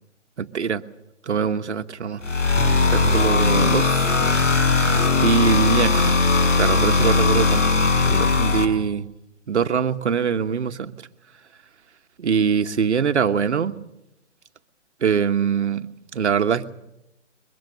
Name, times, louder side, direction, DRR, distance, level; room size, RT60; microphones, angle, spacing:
voice 1, 0.4-0.8 1.3-2.2 2.9-4.1 5.2-6.2 6.6-7.7 8.0-9.1 9.5-10.9 12.2-13.8 15.0-16.7, right 7 dB, 65° right, 8 dB, 1.4 m, -23 dB
sound 1, 2.2-8.6, left 3 dB, 90° left, 4.9 m, -19 dB
22.5 x 22.5 x 6.8 m, 0.89 s
hypercardioid pair, 175°, 37 cm